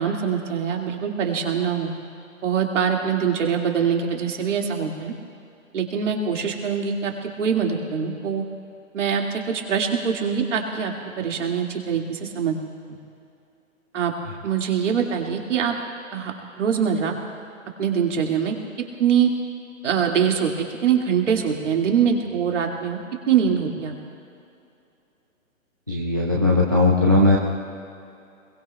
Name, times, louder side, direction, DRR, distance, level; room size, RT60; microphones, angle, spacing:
voice 1, 0.0-1.9 2.4-5.1 5.7-8.4 8.9-12.5 12.9-13.0 13.9-14.1 14.4-15.7 16.1-16.3 16.6-17.2 17.8-18.6 19.0-19.3 19.8-23.0 23.3-23.9, right 7 dB, 60° right, 1 dB, 2.3 m, -23 dB
voice 2, 25.9-27.4, left 2 dB, 15° right, -4 dB, 0.4 m, -18 dB
27.0 x 21.5 x 2.3 m, 2.6 s
hypercardioid pair, 160°, 42 cm